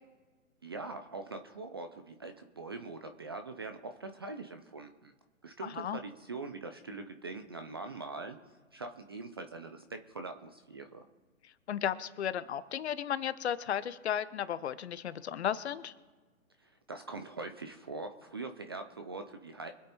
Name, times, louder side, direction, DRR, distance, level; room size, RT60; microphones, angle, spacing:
voice 1, 0.6-5.1 5.4-8.4 8.7-11.0 16.6-19.7, right 3 dB, 20° right, 6 dB, 0.4 m, -43 dB
voice 2, 5.6-6.0 11.4-15.9, left 9 dB, 50° left, 14 dB, 1.0 m, -34 dB
24.5 x 8.3 x 4.3 m, 1.4 s
hypercardioid pair, 140°, 41 cm